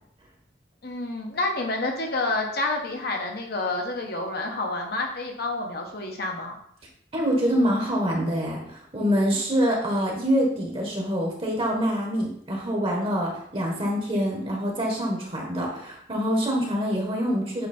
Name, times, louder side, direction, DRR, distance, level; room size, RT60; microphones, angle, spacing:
voice 1, 0.8-6.6, left 2 dB, 60° left, 2 dB, 1.2 m, -29 dB
voice 2, 7.1-17.7, equal, 30° right, -1 dB, 1.4 m, -25 dB
8.1 x 3.0 x 4.3 m, 0.68 s
head